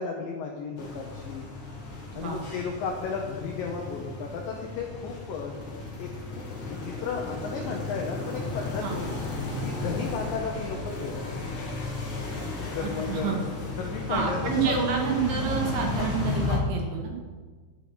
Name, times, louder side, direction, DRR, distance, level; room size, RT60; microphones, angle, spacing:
voice 1, 0.0-1.4 2.1-5.5 6.0-9.1 9.6-11.5 12.7-13.4 13.8-14.8 16.0-16.1 16.5-16.6, left 5 dB, 80° left, 2 dB, 2.0 m, -34 dB
sound 1, 0.8-16.6, left 3 dB, 65° left, 1.2 m, -34 dB
voice 2, 12.8-13.4 14.1-17.2, right 7 dB, 65° right, 1 dB, 2.8 m, -29 dB
10.5 x 7.7 x 6.2 m, 1.4 s
omnidirectional pair, 5.3 m